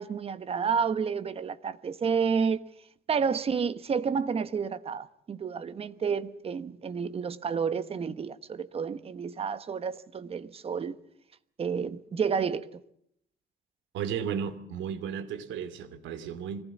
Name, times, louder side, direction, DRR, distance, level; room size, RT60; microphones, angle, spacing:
voice 1, 0.0-2.7 3.1-11.0 11.6-12.8, right 6 dB, 30° right, 1.1 m, -30 dB
voice 2, 13.9-16.6, right 7 dB, 85° right, 2.7 m, -34 dB
25.0 x 19.0 x 7.3 m
cardioid pair, 155°, 19 cm